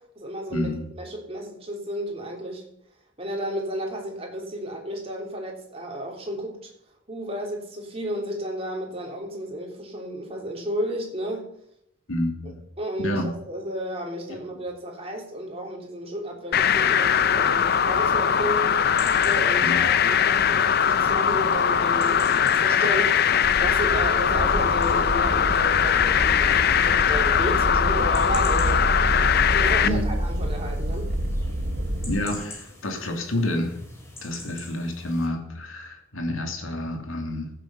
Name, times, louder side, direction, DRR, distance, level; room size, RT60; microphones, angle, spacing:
voice 1, 0.2-0.7 1.0-2.6 3.2-6.7 7.1-11.5 12.8-18.8 19.2-28.9 29.5-31.1, equal, 30° right, 0 dB, 3.5 m, -33 dB
voice 2, 12.1-12.6 13.0-13.3 14.3-14.4 19.6-20.0 29.8-30.1 32.0-33.8 34.2-37.5, left 1 dB, 70° left, 3 dB, 2.9 m, -29 dB
sound 1, 16.5-29.9, left 8 dB, 50° left, 0.6 m, -21 dB
sound 2, 16.6-35.3, left 2 dB, 10° left, 2.8 m, -47 dB
sound 3, 23.4-32.2, right 1 dB, 50° right, 1.3 m, -28 dB
15.5 x 7.6 x 5.6 m, 0.74 s
head